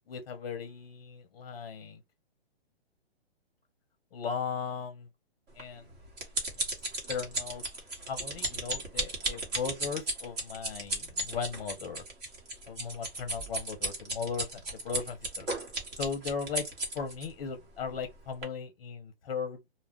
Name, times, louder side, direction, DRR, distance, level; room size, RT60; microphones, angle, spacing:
voice 1, 0.1-2.0 4.1-5.1 5.6-5.9 7.1-7.6 8.1-12.0 12.7-15.5 15.9-16.7 16.9-19.6, left 6 dB, 40° left, 0.7 m, -37 dB
sound 1, 5.6-17.3 17.9-18.1 18.4-18.5, right 2 dB, 35° right, 1.2 m, -35 dB
2.3 x 2.1 x 3.4 m
hypercardioid pair, 150°, 32 cm